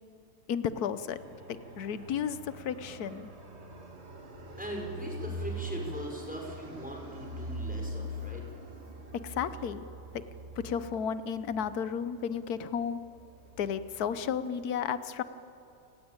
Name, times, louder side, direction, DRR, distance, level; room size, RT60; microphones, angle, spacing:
voice 1, 0.5-1.2 1.8-3.3 9.2-9.9 10.1-10.2 10.6-13.0 13.6-15.2, left 7 dB, 90° left, 13 dB, 1.4 m, -33 dB
Fixed-wing aircraft airplane, 1.1-14.6, equal, 45° right, 2.4 m, -43 dB
voice 2, 4.6-8.4, right 1 dB, 5° right, 0 dB, 5.3 m, -40 dB
29.0 x 19.5 x 8.9 m, 2.7 s
omnidirectional pair, 1.6 m